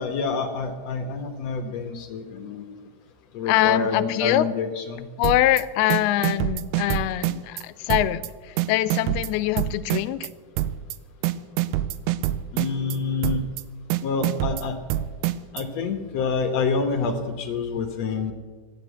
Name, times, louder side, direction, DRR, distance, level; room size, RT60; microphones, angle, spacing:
voice 1, 0.0-2.6 3.3-5.1 12.5-13.4 14.0-14.8 15.5-18.3, left 4 dB, 65° left, 5 dB, 1.7 m, -27 dB
voice 2, 3.5-4.4 5.2-10.3, left 14 dB, 85° left, 14 dB, 2.6 m, -23 dB
sound 1, 5.2-5.6 5.9-7.6 7.9-8.3 8.6-10.3 10.6-11.0 11.2-13.0 13.2-13.6 13.9-15.6, right 14 dB, 80° right, 2.2 m, -26 dB
13.5 x 10.5 x 8.1 m, 1.5 s
omnidirectional pair, 4.3 m